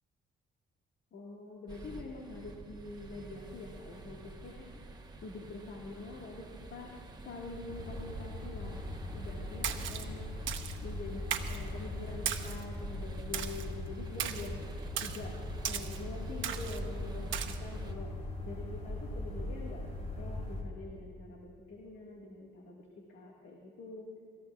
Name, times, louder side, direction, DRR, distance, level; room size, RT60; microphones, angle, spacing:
voice 1, 1.1-4.7 5.2-6.9 7.3-8.9 9.1-10.3 10.8-14.6 15.0-15.3 15.7-18.1 18.5-24.1, left 3 dB, 65° left, -2 dB, 1.8 m, -45 dB
sound 1, 1.7-17.9, right 3 dB, 20° right, 1.2 m, -49 dB
sound 2, 7.7-20.6, left 1 dB, 35° left, 3.4 m, -40 dB
Splash splatter, 9.6-10.0 10.5-10.8 11.3-11.6 12.3-12.6 13.3-13.7 14.2-14.5 15.0-15.2 15.6-16.0 16.4-16.8 17.3-17.6, right 10 dB, 75° right, 0.9 m, -36 dB
23.5 x 14.0 x 2.4 m, 2.3 s
cardioid pair, 90°, 20 cm